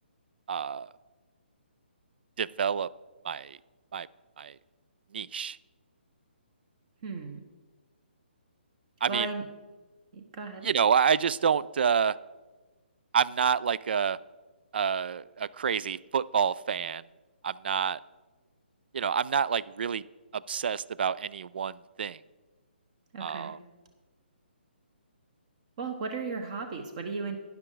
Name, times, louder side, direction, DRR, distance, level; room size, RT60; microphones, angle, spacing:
voice 1, 0.5-0.9 2.4-2.9 3.2-3.6 3.9-4.1 4.4-4.5 5.1-5.6 9.0-9.3 10.6-12.2 13.1-14.2 14.7-17.0 17.4-18.0 18.9-20.0 20.3-22.2 23.2-23.6, right 7 dB, 60° right, 21 dB, 0.4 m, -28 dB
voice 2, 7.0-7.4 9.1-9.5 10.1-10.7 23.1-23.5 25.8-27.4, right 4 dB, 40° right, 6 dB, 1.1 m, -35 dB
12.0 x 10.0 x 3.9 m, 1.3 s
hypercardioid pair, 145°, 6 cm